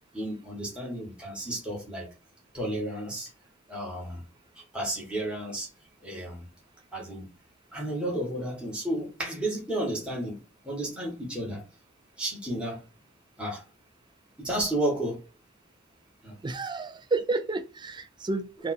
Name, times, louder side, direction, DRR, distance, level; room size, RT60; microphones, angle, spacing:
voice 1, 0.1-2.1 2.5-3.3 3.7-4.2 4.5-5.7 6.0-6.4 6.9-7.3 7.7-10.4 10.6-11.6 12.2-12.8 13.4-13.6 14.4-15.2 16.2-16.4, right 1 dB, 5° right, 1.5 m, -32 dB
voice 2, 16.4-18.7, right 3 dB, 20° right, 0.4 m, -30 dB
3.5 x 2.4 x 4.3 m
head